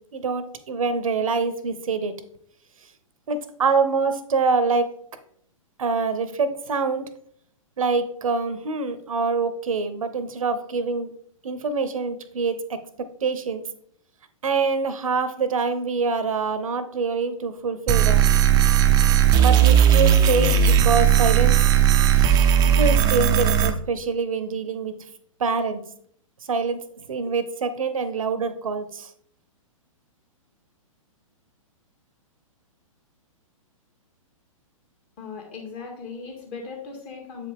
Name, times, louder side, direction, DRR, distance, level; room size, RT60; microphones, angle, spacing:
voice 1, 0.1-2.2 3.3-4.9 5.8-7.1 7.8-11.1 11.4-13.6 14.4-18.3 19.4-21.6 22.1-25.0 25.4-25.8 26.5-29.1, right 4 dB, 75° right, 12 dB, 0.8 m, -25 dB
sound 1, 17.9-23.7, right 9 dB, 20° right, 0.5 m, -17 dB
voice 2, 35.2-37.5, left 5 dB, 35° left, 0 dB, 2.1 m, -38 dB
7.5 x 4.9 x 3.4 m, 0.65 s
figure-of-eight pair, 115°, 18 cm